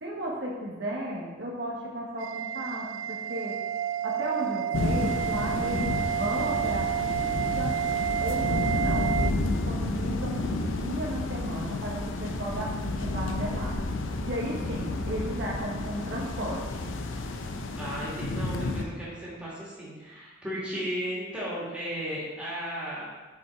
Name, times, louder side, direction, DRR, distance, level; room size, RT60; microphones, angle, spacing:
voice 1, 0.0-3.6 4.0-7.7 8.2-13.7 14.2-16.9, right 1 dB, 60° right, -3 dB, 1.3 m, -35 dB
sound 1, 2.2-9.3, right 11 dB, 85° right, 0.3 m, -30 dB
sound 2, 4.7-18.8, left 2 dB, 75° left, 0.6 m, -31 dB
voice 2, 17.7-23.1, equal, 5° right, -8 dB, 2.3 m, -35 dB
7.2 x 5.4 x 4.5 m, 1.3 s
head